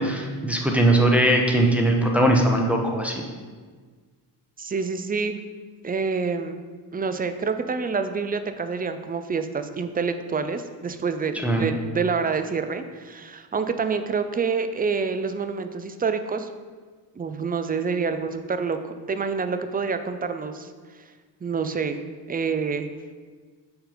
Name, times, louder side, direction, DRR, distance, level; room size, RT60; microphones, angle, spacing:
voice 1, 0.0-3.2 11.4-11.7, right 1 dB, 5° right, 1 dB, 0.7 m, -20 dB
voice 2, 4.6-5.4 5.8-6.6 6.9-16.5 17.2-18.8 19.1-20.7 21.4-22.0 22.3-22.9, right 5 dB, 20° right, 9 dB, 0.3 m, -27 dB
6.2 x 3.3 x 4.9 m, 1.5 s
cardioid pair, 75°, 44 cm